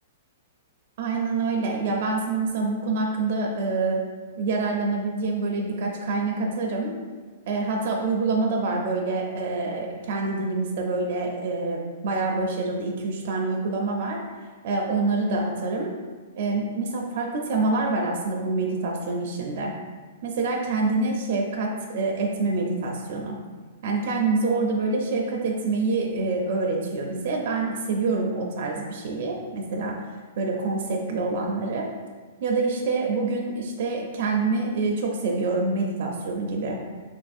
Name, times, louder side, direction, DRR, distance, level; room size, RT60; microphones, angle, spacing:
voice 1, 1.0-4.0 4.4-7.0 7.5-14.2 14.6-15.9 16.3-19.7 20.2-23.4 23.8-30.0 30.4-31.9 32.4-36.8, right 3 dB, 55° right, 0 dB, 0.4 m, -26 dB
3.8 x 2.6 x 2.4 m, 1.5 s
hypercardioid pair, 150°, 0 cm